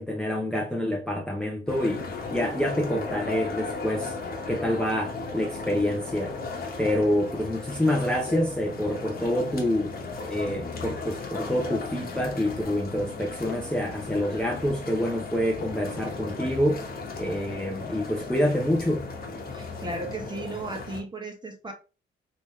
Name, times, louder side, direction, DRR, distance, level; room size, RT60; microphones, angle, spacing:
voice 1, 0.0-2.1 2.3-4.2 4.5-6.4 6.8-9.9 10.3-16.9 17.2-19.0, left 1 dB, 5° left, 0.8 m, -27 dB
sound 1, 1.7-21.0, left 4 dB, 50° left, 1.2 m, -36 dB
voice 2, 19.5-21.7, right 2 dB, 20° right, 1.1 m, -35 dB
3.3 x 3.0 x 3.2 m
cardioid pair, 90°, 20 cm